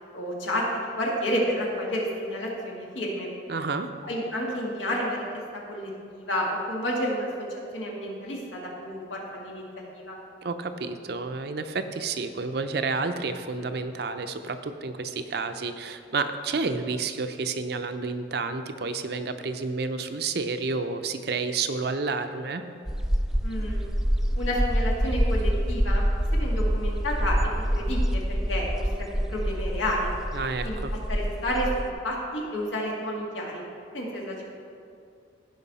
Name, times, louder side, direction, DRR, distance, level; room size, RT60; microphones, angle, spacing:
voice 1, 0.1-3.3 4.0-5.2 5.7-7.3 7.7-9.6 9.9-10.2 23.4-23.8 24.4-26.0 26.3-27.4 27.7-28.9 29.3-30.1 30.6-30.8 31.1-33.6 33.9-34.4, equal, 85° left, -2 dB, 1.9 m, -30 dB
voice 2, 3.5-3.9 10.4-22.6 30.3-30.9, right 4 dB, 55° right, 8 dB, 0.5 m, -30 dB
sound 1, 22.9-31.9, equal, 5° right, 0.3 m, -26 dB
15.5 x 5.3 x 4.1 m, 2.4 s
head